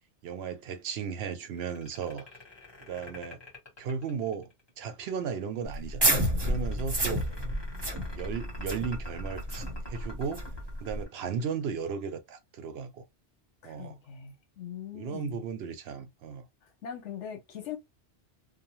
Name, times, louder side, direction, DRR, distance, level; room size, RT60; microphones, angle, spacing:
voice 1, 0.2-2.3 2.8-3.4 3.8-4.5 4.8-6.0 6.4-7.3 8.1-10.5 10.8-13.0 13.6-14.0 14.9-16.5, right 6 dB, 65° right, 0.8 m, -35 dB
sound 1, 1.5-4.7 6.1-11.6, equal, 20° left, 1.1 m, -46 dB
sound 2, 5.7-11.0, right 1 dB, 25° right, 0.7 m, -30 dB
voice 2, 13.6-15.4 16.6-17.8, left 9 dB, 80° left, 1.1 m, -41 dB
2.8 x 2.1 x 2.9 m
omnidirectional pair, 1.2 m